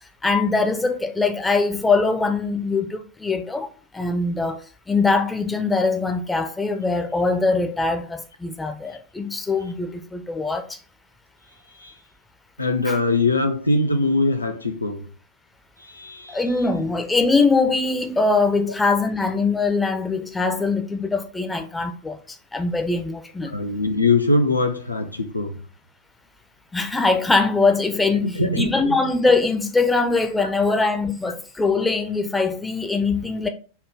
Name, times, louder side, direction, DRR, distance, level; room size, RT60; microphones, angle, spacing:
voice 1, 0.2-10.8 12.9-13.0 16.3-23.6 26.7-33.5, left 3 dB, 10° left, 0.5 m, -22 dB
voice 2, 12.6-15.1 15.8-16.4 23.5-25.6 28.2-29.0, left 2 dB, 85° left, 0.6 m, -22 dB
5.6 x 2.2 x 3.4 m
figure-of-eight pair, 90°, 0 cm